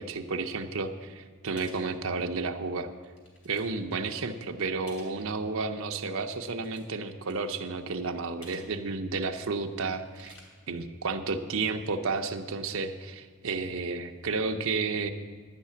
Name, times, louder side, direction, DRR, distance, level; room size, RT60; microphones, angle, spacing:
voice 1, 0.0-2.9 3.4-10.3 10.7-15.1, right 4 dB, 65° right, 6 dB, 0.7 m, -32 dB
sound 1, 1.6-1.8 2.4-2.5 3.0-3.6 3.9-4.2 4.9-5.2 6.3-7.0 7.3-7.4 8.4-8.7 9.0-9.1 10.0-10.4, left 1 dB, 70° left, 2.8 m, -52 dB
11.5 x 5.7 x 8.3 m, 1.5 s
head